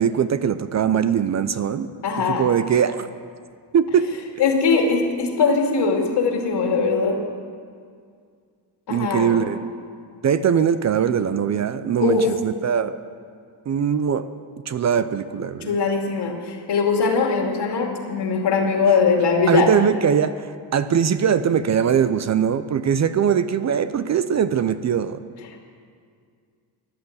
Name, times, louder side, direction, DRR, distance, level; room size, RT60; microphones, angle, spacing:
voice 1, 0.0-1.9 2.3-3.1 3.7-4.1 8.9-9.6 10.2-12.9 13.7-14.3 14.7-15.7 19.5-25.2, right 8 dB, 40° right, 12 dB, 0.5 m, -21 dB
voice 2, 2.0-2.5 4.4-7.2 8.9-9.5 12.0-12.3 15.6-19.7, left 4 dB, 65° left, 2 dB, 2.6 m, -21 dB
14.5 x 10.5 x 8.0 m, 2.1 s
cardioid pair, 125°, 43 cm